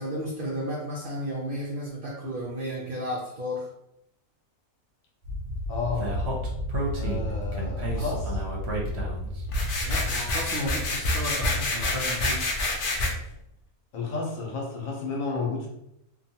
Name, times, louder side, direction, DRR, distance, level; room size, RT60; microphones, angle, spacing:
voice 1, 0.0-3.7 9.8-12.6, equal, 75° right, -3 dB, 0.5 m, -33 dB
Speech, 5.2-10.2, equal, 60° right, 0.8 m, -30 dB
voice 2, 5.7-6.1 6.9-8.4 13.9-15.7, left 4 dB, 70° left, -1 dB, 1.1 m, -32 dB
sound 1, 9.5-13.1, left 2 dB, 90° left, 0.4 m, -27 dB
2.8 x 2.2 x 2.7 m, 0.79 s
omnidirectional pair, 1.5 m